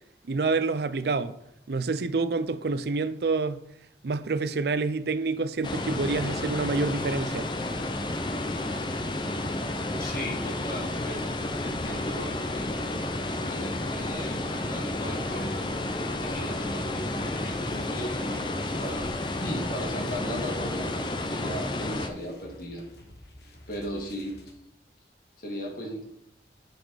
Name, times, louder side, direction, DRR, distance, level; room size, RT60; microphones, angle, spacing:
voice 1, 0.3-1.4 1.7-3.7 4.0-7.5, right 3 dB, 65° right, 0.5 m, -27 dB
sound 1, 5.6-22.1, left 2 dB, 25° left, 0.6 m, -31 dB
voice 2, 10.0-12.7 12.9-15.6 16.2-19.1 19.4-22.9 23.7-24.4 25.4-26.0, equal, 55° left, 2.1 m, -37 dB
sound 2, 16.9-24.5, left 1 dB, 70° left, 1.5 m, -50 dB
9.2 x 4.3 x 4.9 m
head